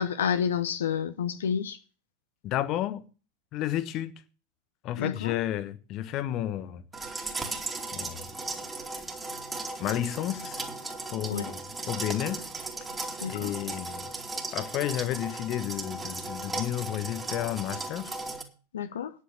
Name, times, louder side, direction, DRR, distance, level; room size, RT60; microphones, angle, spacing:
voice 1, 0.0-1.8 5.0-5.3 11.3-11.5 13.2-13.5 18.7-19.1, left 7 dB, 65° left, 0.9 m, -29 dB
voice 2, 2.4-3.0 3.5-4.2 4.8-6.8 7.9-8.2 9.8-10.6 11.1-12.4 13.2-14.1 14.5-18.1, left 12 dB, 35° left, 1.2 m, -31 dB
sound 1, 6.9-18.4, right 3 dB, 15° right, 2.6 m, -36 dB
10.0 x 8.4 x 6.6 m
figure-of-eight pair, 90°, 0 cm